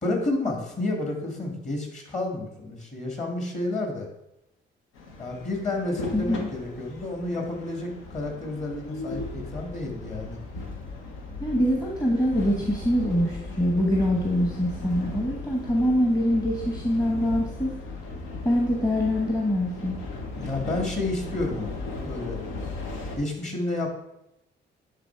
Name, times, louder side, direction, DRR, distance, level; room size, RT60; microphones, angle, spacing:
voice 1, 0.0-4.1 5.2-10.4 20.4-21.8 22.0-22.4 23.1-23.9, left 2 dB, 35° left, 2 dB, 2.1 m, -30 dB
sound 1, 4.9-23.2, left 3 dB, 90° left, 1.1 m, -37 dB
voice 2, 6.1-6.5 11.4-17.7 18.4-20.0, equal, 20° left, -1 dB, 1.1 m, -24 dB
9.9 x 3.3 x 4.5 m, 0.84 s
cardioid pair, 90°, 20 cm